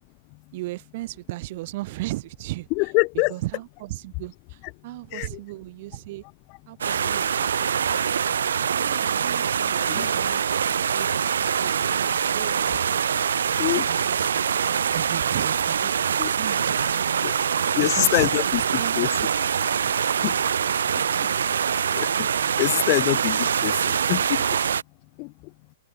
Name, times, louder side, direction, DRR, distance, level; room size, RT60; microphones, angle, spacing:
voice 1, 0.5-2.7 3.3-6.2 6.7-13.4 13.7-17.2 17.9-19.3, right 19 dB, 50° right, 7.5 m, -37 dB
voice 2, 2.8-3.3 5.1-5.3 7.0-7.2 9.9-10.1 13.6-13.9 16.2-16.3 17.2-17.3 17.8-18.6 19.0-19.1 20.2-20.4 21.9-22.3 22.6-23.7 24.1-24.4 25.2-25.3, left 34 dB, 40° left, 1.0 m, -24 dB
sound 1, 6.8-24.8, right 7 dB, 80° right, 0.7 m, -24 dB
hypercardioid pair, 130°, 0 cm